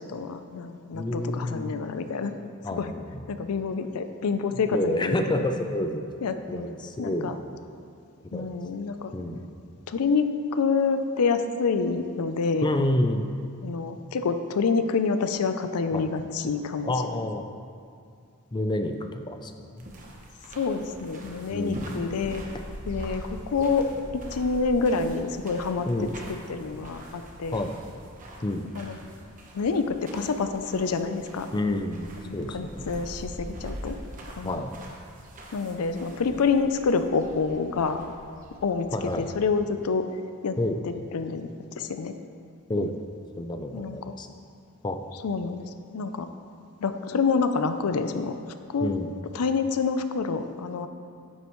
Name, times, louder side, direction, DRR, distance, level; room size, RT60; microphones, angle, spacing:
voice 1, 0.0-2.3 2.8-2.9 3.3-5.4 6.2-6.7 7.0-7.3 8.3-9.1 9.9-12.7 13.6-16.9 20.5-22.4 22.9-27.6 28.7-29.0 29.5-31.5 32.3-34.0 34.4-34.6 35.5-38.0 38.6-38.9 39.2-40.0 40.4-40.6 41.1-42.1 42.8-42.9 43.7-44.1 45.2-45.6 45.9-46.3 46.8-48.3 48.7-48.9 49.3-50.9, left 4 dB, 85° left, 9 dB, 0.5 m, -27 dB
voice 2, 0.9-1.8 2.6-3.2 4.7-6.0 6.5-7.3 8.3-8.5 9.1-9.4 12.6-13.3 15.9-16.1 16.9-17.4 18.5-19.9 21.5-22.0 25.9-26.2 27.5-27.7 28.4-28.7 31.5-32.9 34.4-34.7 38.9-39.3 40.6-40.8 42.7-42.9 43.4-44.3 44.8-45.0 48.8-49.1, left 1 dB, 20° left, 6 dB, 0.4 m, -29 dB
sound 1, 19.8-39.4, right 1 dB, 35° right, 1.1 m, -43 dB
9.5 x 8.2 x 3.1 m, 2.3 s
head